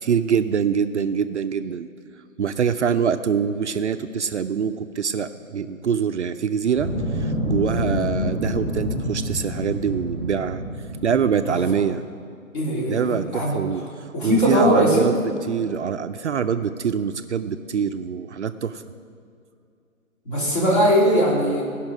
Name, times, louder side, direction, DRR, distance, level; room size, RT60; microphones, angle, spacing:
voice 1, 0.0-1.9 2.4-10.6 11.0-12.0 12.9-15.1 15.5-18.8, right 7 dB, 55° right, 9 dB, 0.5 m, -24 dB
sound 1, 6.7-11.8, equal, ahead, 2.7 m, -27 dB
voice 2, 12.5-13.6 14.1-15.2 20.2-21.6, equal, 35° left, -4 dB, 3.4 m, -20 dB
16.5 x 5.8 x 6.2 m, 2.4 s
hypercardioid pair, 155°, 41 cm